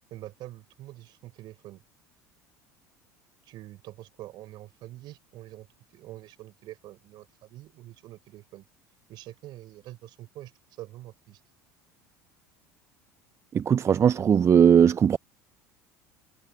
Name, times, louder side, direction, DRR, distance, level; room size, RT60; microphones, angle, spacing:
voice 1, 0.1-1.8 3.4-5.7 5.9-8.6 9.1-10.5 10.8-11.4, right 15 dB, 55° right, 5.0 m, -45 dB
voice 2, 13.5-15.2, right 8 dB, 35° right, 0.6 m, -19 dB
hypercardioid pair, 80°, 9 cm